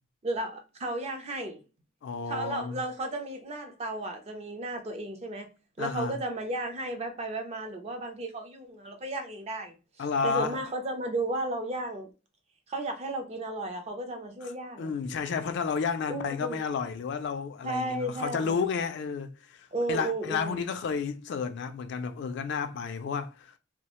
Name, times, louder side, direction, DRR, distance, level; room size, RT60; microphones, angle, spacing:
voice 1, 0.2-1.6 2.3-5.5 5.8-9.7 10.2-12.1 12.7-14.9 16.1-16.6 17.6-18.6 19.7-20.6, right 2 dB, 30° right, 0.5 m, -34 dB
voice 2, 2.0-2.8 5.8-6.2 10.0-10.6 14.4-14.5 14.8-23.5, left 5 dB, 55° left, 0.3 m, -31 dB
2.3 x 2.1 x 2.9 m
head